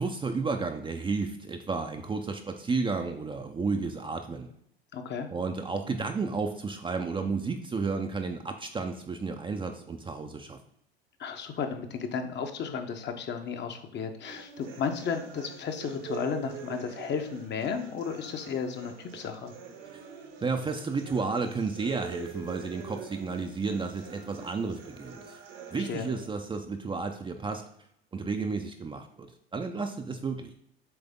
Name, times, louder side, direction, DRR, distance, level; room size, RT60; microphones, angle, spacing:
voice 1, 0.0-4.5 5.3-10.6 19.9-20.0 20.4-25.4 25.7-27.6 28.1-30.5, right 4 dB, 15° right, 5 dB, 0.6 m, -32 dB
voice 2, 4.9-5.3 11.2-19.5 25.7-26.1, left 6 dB, 35° left, 6 dB, 0.9 m, -34 dB
sound 1, 14.2-26.3, right 5 dB, 65° right, 1.4 m, -45 dB
7.9 x 3.4 x 3.6 m, 0.71 s
hypercardioid pair, 85°, 31 cm